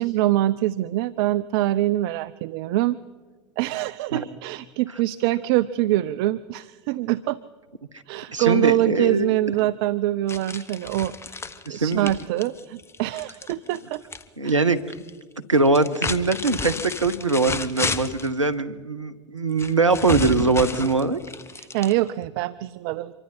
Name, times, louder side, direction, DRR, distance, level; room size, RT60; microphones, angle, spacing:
voice 1, 0.0-3.0 3.6-7.4 8.1-11.4 11.7-14.0 14.4-14.6 21.5-23.1, right 15 dB, 50° right, 15 dB, 0.5 m, -24 dB
voice 2, 8.3-9.3 11.7-12.1 14.4-14.8 15.5-21.2, right 3 dB, 85° right, 10 dB, 0.9 m, -22 dB
sound 1, 10.3-14.2 14.5-15.1 15.7-18.3 19.6-22.3, left 4 dB, 15° left, 1.0 m, -32 dB
26.0 x 23.5 x 4.4 m, 1.4 s
figure-of-eight pair, 75°, 15 cm